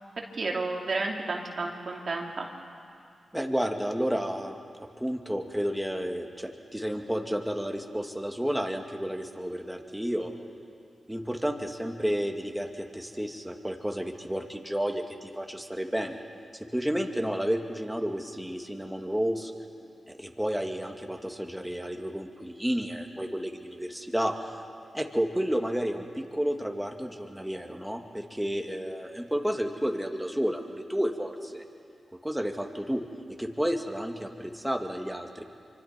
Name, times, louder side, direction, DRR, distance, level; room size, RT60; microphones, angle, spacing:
voice 1, 0.4-2.5, right 3 dB, 60° right, 0 dB, 2.7 m, -31 dB
voice 2, 3.3-10.3 11.1-16.2 16.7-19.5 20.2-24.5 24.9-31.6 32.2-33.0 33.4-35.4, equal, 5° right, 2 dB, 2.4 m, -31 dB
26.0 x 25.0 x 4.6 m, 2.4 s
supercardioid pair, 40°, 0 cm